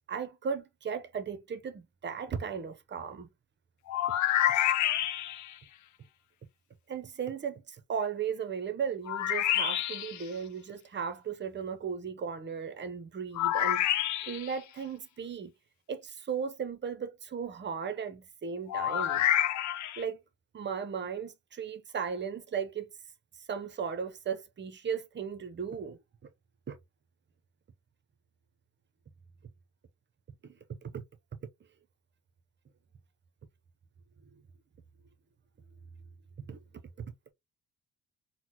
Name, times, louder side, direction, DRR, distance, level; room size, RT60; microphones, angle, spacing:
voice 1, 0.1-3.3 6.9-13.9 14.3-15.5 15.9-19.3 20.0-20.2 20.5-22.9 23.5-26.0 26.7-26.8 30.4-31.0 36.5-36.6 37.0-37.3, right 6 dB, 35° right, 0.7 m, -36 dB
sound 1, 3.9-5.5 9.1-10.2 13.3-14.6 18.7-20.0, left 12 dB, 70° left, 0.5 m, -28 dB
4.0 x 2.1 x 2.9 m
cardioid pair, 90°, 30 cm